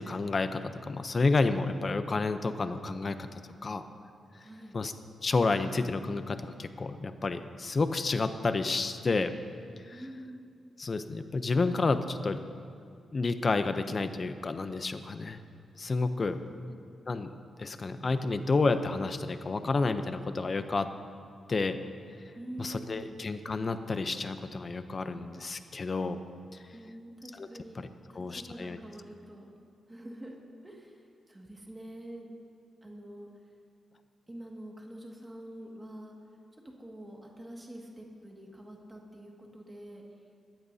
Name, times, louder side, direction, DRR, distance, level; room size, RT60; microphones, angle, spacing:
voice 1, 0.0-3.8 4.7-4.9 5.2-9.3 9.9-10.1 10.8-12.4 13.1-15.4 15.8-16.4 17.1-17.3 17.6-20.9 21.5-21.8 22.6-26.2 27.3-27.5 27.7-27.9 28.1-28.8, left 3 dB, 30° left, 9 dB, 0.6 m, -30 dB
voice 2, 4.4-4.8 9.9-10.5 16.1-16.7 22.3-23.2 26.7-27.8 28.1-29.5 29.9-30.4 30.6-30.9 31.3-32.3 32.8-33.3 34.3-36.2 36.8-40.0, right 1 dB, 15° right, -1 dB, 2.0 m, -46 dB
20.5 x 15.0 x 2.8 m, 2.4 s
wide cardioid pair, 150°, 0 cm